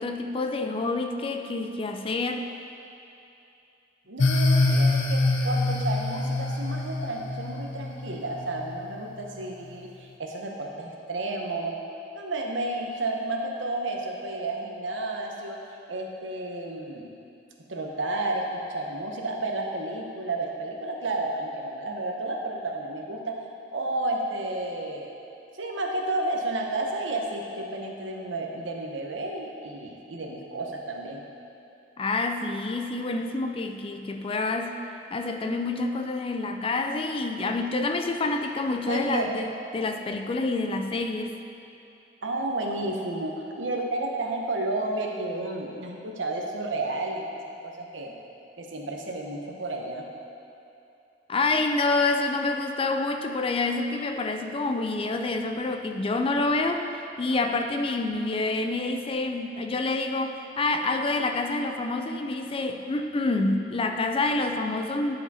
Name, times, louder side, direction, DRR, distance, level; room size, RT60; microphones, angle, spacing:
voice 1, 0.0-2.5 32.0-34.8 35.1-41.3 51.3-65.2, left 3 dB, 30° left, 6 dB, 0.4 m, -27 dB
voice 2, 4.1-11.8 12.1-15.6 15.9-17.1 17.7-23.4 23.7-25.1 25.6-31.2 38.9-39.2 42.2-47.2 47.6-48.1 48.6-50.1, right 2 dB, 85° right, 0 dB, 0.9 m, -31 dB
sound 1, 4.2-8.7, left 2 dB, 80° left, 0.6 m, -25 dB
10.5 x 4.8 x 4.2 m, 2.7 s
head